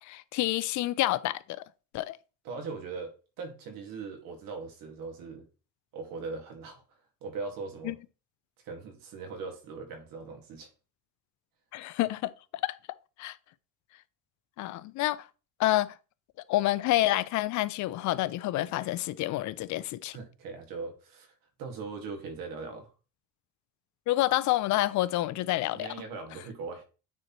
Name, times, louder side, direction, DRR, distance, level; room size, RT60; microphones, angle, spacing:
voice 1, 0.1-1.4 1.9-2.2 7.8-7.9 11.7-12.3 12.6-12.8 13.2-13.4 14.6-15.2 15.6-15.9 16.5-20.2 24.1-25.9, left 16 dB, 60° left, 0.5 m, -28 dB
voice 2, 2.4-5.5 5.9-8.0 8.6-10.7 20.1-22.9 25.7-26.8, right 4 dB, 85° right, 2.0 m, -40 dB
9.4 x 4.3 x 3.0 m
cardioid pair, 170°, 33 cm